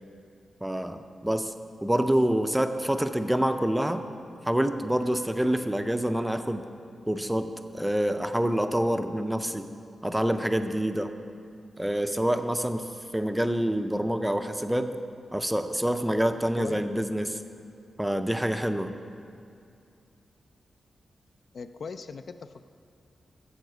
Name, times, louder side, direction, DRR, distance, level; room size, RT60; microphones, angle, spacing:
voice 1, 0.6-1.5 1.8-4.1 4.4-6.7 7.1-9.7 10.0-11.1 11.8-14.9 15.3-17.4 18.0-18.9, right 1 dB, 5° right, 8 dB, 0.4 m, -27 dB
voice 2, 21.5-22.7, left 5 dB, 55° left, 10 dB, 0.4 m, -39 dB
9.5 x 7.2 x 7.9 m, 2.5 s
wide cardioid pair, 150°, 0 cm